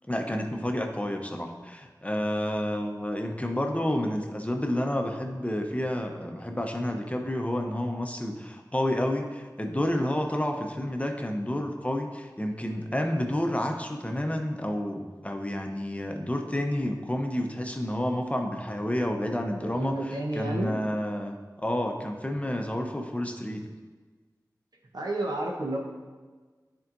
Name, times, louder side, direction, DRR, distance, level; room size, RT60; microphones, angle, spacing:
voice 1, 0.1-23.7, left 1 dB, 20° left, 3 dB, 0.7 m, -30 dB
voice 2, 19.6-20.7 24.9-25.8, right 1 dB, 75° right, -1 dB, 1.0 m, -31 dB
10.5 x 4.5 x 2.6 m, 1.4 s
wide cardioid pair, 40°, 7 cm